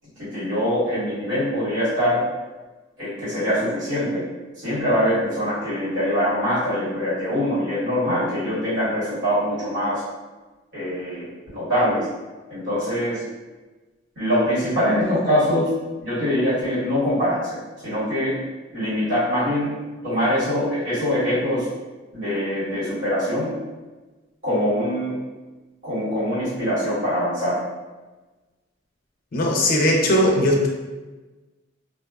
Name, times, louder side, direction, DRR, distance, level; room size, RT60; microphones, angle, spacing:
voice 1, 0.2-2.2 3.0-4.2 4.6-10.0 10.7-11.2 11.5-12.1 12.5-13.2 14.1-15.7 16.0-17.5 17.8-18.3 18.7-19.7 20.0-21.7 22.1-23.5 24.4-25.2 25.8-27.6, equal, 70° right, -11 dB, 1.5 m, -23 dB
voice 2, 29.3-30.7, left 1 dB, 50° left, -1 dB, 0.4 m, -19 dB
2.4 x 2.2 x 2.3 m, 1.2 s
head